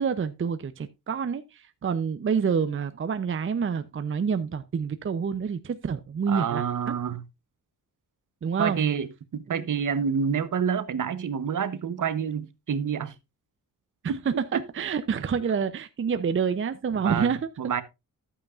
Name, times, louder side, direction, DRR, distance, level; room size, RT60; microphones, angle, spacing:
voice 1, 0.0-7.0 8.4-8.8 14.0-17.5, right 6 dB, 35° right, 0.6 m, -28 dB
voice 2, 6.3-7.2 8.6-13.1 14.1-14.6 17.0-17.3 17.6-17.8, right 7 dB, 60° right, 0.9 m, -28 dB
11.5 x 8.7 x 2.4 m
cardioid pair, 95°, 36 cm